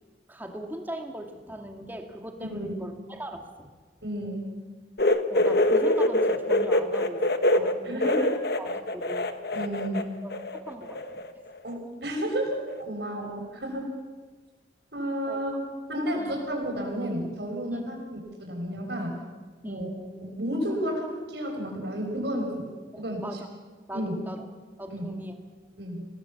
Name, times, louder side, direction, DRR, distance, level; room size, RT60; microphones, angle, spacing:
voice 1, 0.3-3.7 5.3-7.2 7.5-9.3 9.9-10.0 10.2-11.2 13.2-13.3 15.3-15.4 16.2-16.3 17.7-17.8 19.6-20.0 22.9-23.5 23.9-24.4 24.8-25.3, right 1 dB, 10° right, 3 dB, 2.3 m, -40 dB
voice 2, 2.5-2.8 4.0-4.5 7.6-8.3 9.5-10.1 11.6-12.6 12.9-13.9 14.9-15.5 15.9-19.2 19.6-19.9 20.2-22.7 23.0-23.2 23.9-24.1 24.9-25.1 25.8-26.0, equal, 70° right, 1 dB, 6.6 m, -31 dB
sound 1, 5.0-10.0 10.3-11.3 11.6-11.7 12.7-12.8, left 1 dB, 60° left, 1.3 m, -24 dB
27.0 x 18.5 x 7.3 m, 1.4 s
head